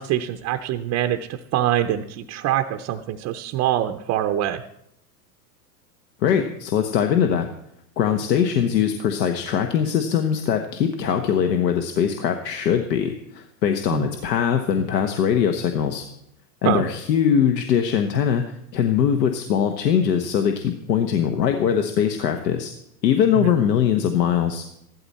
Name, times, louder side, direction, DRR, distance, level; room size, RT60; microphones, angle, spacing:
voice 1, 0.0-4.6 13.9-14.1 16.6-16.8 23.4-23.6, right 12 dB, 30° right, 5 dB, 0.6 m, -24 dB
voice 2, 6.2-7.5 8.0-16.0 16.6-22.7 23.0-24.6, left 8 dB, 75° left, 6 dB, 1.3 m, -21 dB
15.0 x 12.0 x 4.2 m, 0.78 s
hypercardioid pair, 120°, 50 cm